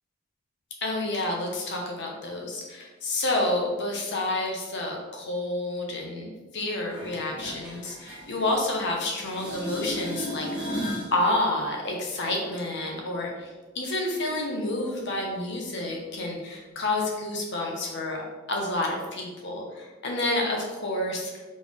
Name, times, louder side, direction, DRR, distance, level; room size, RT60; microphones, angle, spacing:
voice 1, 0.8-10.8 11.1-18.2 18.5-21.3, left 2 dB, 60° left, 0 dB, 0.8 m, -29 dB
sound 1, 6.9-9.0 9.2-11.1 16.9-17.0, equal, 5° right, 1.5 m, -35 dB
4.1 x 3.3 x 3.6 m, 1.3 s
head